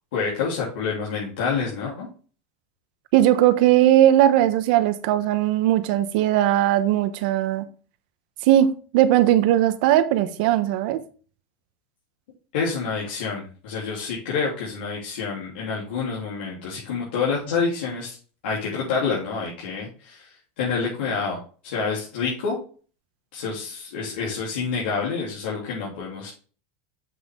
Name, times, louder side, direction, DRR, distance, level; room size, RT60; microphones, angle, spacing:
voice 1, 0.1-2.1 12.5-18.2 18.4-22.6 23.3-26.3, left 5 dB, 90° left, 3.4 m, -28 dB
voice 2, 3.1-7.6 8.4-8.7 8.9-11.0, right 12 dB, 60° right, 1.0 m, -18 dB
7.6 x 6.1 x 3.7 m
supercardioid pair, 155°, 5 cm